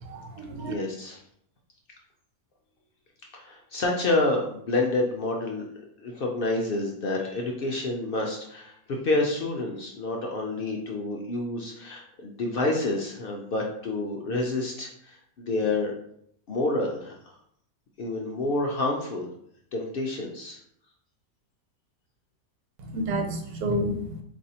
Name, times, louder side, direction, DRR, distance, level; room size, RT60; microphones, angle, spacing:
voice 1, 0.0-0.7 22.9-24.2, right 1 dB, 90° right, 4 dB, 1.1 m, -30 dB
voice 2, 0.6-1.2 3.3-5.6 6.0-8.7 9.0-15.9 16.5-17.1 18.0-19.3 19.7-20.6, left 2 dB, 70° left, 0 dB, 0.5 m, -28 dB
4.1 x 2.6 x 2.8 m, 0.69 s
omnidirectional pair, 1.5 m